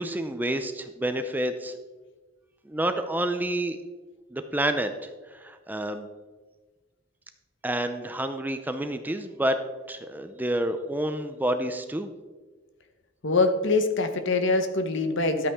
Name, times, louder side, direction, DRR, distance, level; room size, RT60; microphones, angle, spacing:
voice 1, 0.0-1.7 2.7-3.8 4.3-6.1 7.6-9.6 9.9-12.1, right 1 dB, 10° right, 8 dB, 0.5 m, -29 dB
voice 2, 13.2-15.5, left 3 dB, 60° left, 7 dB, 1.0 m, -24 dB
12.5 x 8.5 x 3.6 m, 1.3 s
head